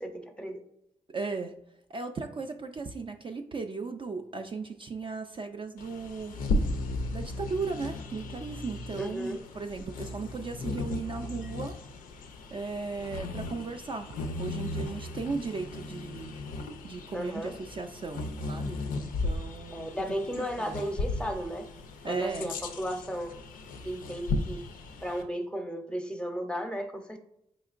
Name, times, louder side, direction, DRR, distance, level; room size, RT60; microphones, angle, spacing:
voice 1, 0.0-0.6 9.0-9.4 17.1-17.6 19.7-21.7 22.1-23.3 23.8-24.6 25.0-27.2, equal, 5° left, 5 dB, 0.6 m, -34 dB
voice 2, 1.1-1.5 1.9-6.3 7.1-11.8 12.5-16.3 16.8-19.9 20.4-20.8 22.0-22.5, right 4 dB, 40° right, 5 dB, 0.3 m, -36 dB
Bird vocalization bird call bird song, 5.8-25.2, left 2 dB, 85° left, 0.4 m, -36 dB
4.2 x 2.9 x 2.4 m, 0.80 s
supercardioid pair, 50°, 14 cm